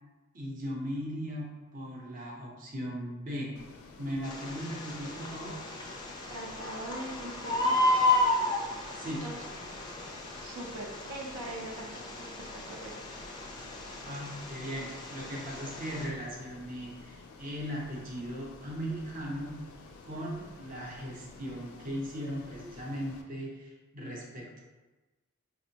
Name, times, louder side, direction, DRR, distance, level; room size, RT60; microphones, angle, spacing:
voice 1, 0.3-3.6 4.0-5.6 9.0-9.2 14.0-19.6 20.0-24.6, equal, 40° right, -2 dB, 0.7 m, -38 dB
Ocean, 3.6-23.2, left 3 dB, 90° left, 0.4 m, -51 dB
Bird, 4.2-16.1, left 2 dB, 20° left, 0.3 m, -33 dB
voice 2, 6.3-8.0 9.2-9.4 10.4-11.9 12.1-13.2, right 1 dB, 80° right, -1 dB, 0.6 m, -42 dB
4.3 x 2.1 x 2.8 m, 1.1 s
head